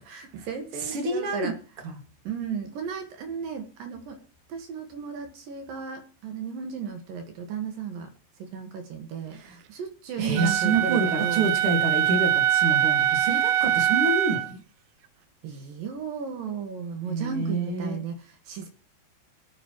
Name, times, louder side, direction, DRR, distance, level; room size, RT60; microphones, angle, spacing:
voice 1, 0.0-1.6 2.2-4.2 4.5-8.1 8.4-11.5 15.4-18.7, right 6 dB, 60° right, 5 dB, 2.8 m, -35 dB
voice 2, 0.8-1.5 1.8-2.0 9.3-9.6 10.2-14.6 17.1-18.1, right 3 dB, 45° right, 4 dB, 2.0 m, -28 dB
Wind instrument woodwind instrument, 10.4-14.5, right 11 dB, 85° right, 2.1 m, -23 dB
24.0 x 8.3 x 3.0 m, 0.35 s
omnidirectional pair, 5.1 m